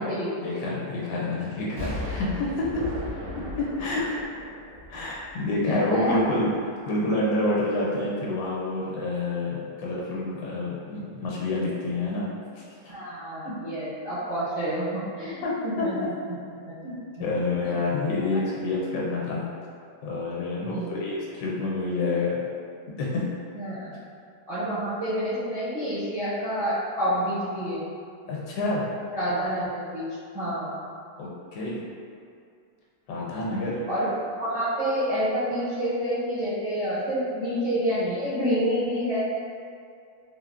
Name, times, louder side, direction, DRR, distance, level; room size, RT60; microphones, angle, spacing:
voice 1, 0.4-2.8 3.6-4.3 4.9-12.3 12.6-12.9 15.4-16.1 16.8-19.4 20.0-22.4 23.0-23.2 28.3-28.8 31.2-31.8 33.1-33.8, left 2 dB, 75° left, -5 dB, 1.2 m, -28 dB
Explosion, 1.8-5.7 6.1-6.2, left 1 dB, 90° right, 1.6 m, -36 dB
voice 2, 5.6-6.2 12.9-15.9 16.6-16.7 17.2-17.3 20.6-20.9 23.5-23.9 24.5-27.9 29.1-30.1 30.3-30.8 33.9-34.1 34.4-39.2, equal, 45° right, -13 dB, 0.4 m, -28 dB
4.0 x 2.0 x 2.4 m, 2.4 s
omnidirectional pair, 1.9 m